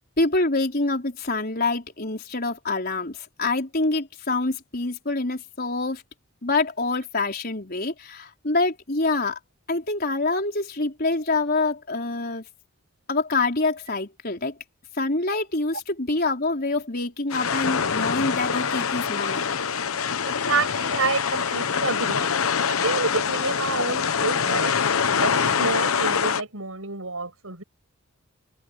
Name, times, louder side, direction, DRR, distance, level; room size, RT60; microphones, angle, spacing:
voice 1, 0.2-6.0 6.4-9.4 9.7-12.4 13.1-14.6 15.0-19.5, left 3 dB, 45° left, 4.5 m, -26 dB
sound 1, 17.3-26.4, left 6 dB, 80° left, 0.9 m, -24 dB
voice 2, 20.2-22.3 22.7-24.8 25.2-27.6, right 3 dB, 75° right, 7.8 m, -28 dB
head